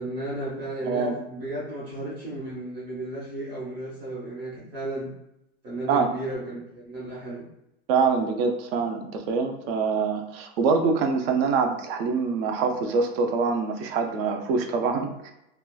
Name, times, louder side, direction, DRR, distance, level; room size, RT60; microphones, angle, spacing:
voice 1, 0.0-5.1 5.6-7.4, right 1 dB, 45° right, -8 dB, 1.1 m, -34 dB
voice 2, 0.8-1.2 5.9-6.1 7.9-15.3, right 5 dB, 60° right, 5 dB, 0.5 m, -25 dB
2.9 x 2.2 x 2.2 m, 0.85 s
supercardioid pair, 155°, 34 cm